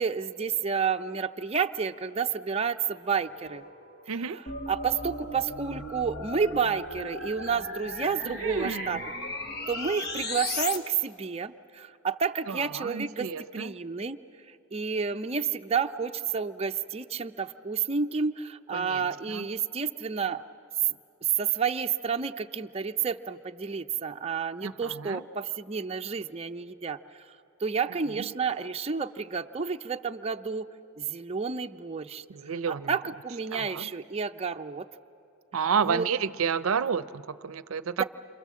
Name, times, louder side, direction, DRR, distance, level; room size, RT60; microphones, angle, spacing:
voice 1, 0.0-3.6 4.1-4.3 4.7-9.0 9.7-13.3 13.5-14.2 14.5-20.4 21.2-27.3 27.6-30.7 31.0-32.2 32.7-34.9 35.9-36.0 38.0-38.1, right 6 dB, 30° right, 5 dB, 0.5 m, -30 dB
sound 1, 2.5-6.5, left 1 dB, 70° left, 1.4 m, -56 dB
voice 2, 4.1-4.4 8.2-9.0 12.5-13.8 18.7-19.5 24.6-25.2 27.9-28.3 32.3-33.0 33.5-33.9 35.5-38.0, right 6 dB, 85° right, 15 dB, 0.5 m, -31 dB
sound 2, 4.5-10.8, left 2 dB, 50° left, 1.4 m, -36 dB
28.5 x 26.5 x 7.5 m, 2.8 s
head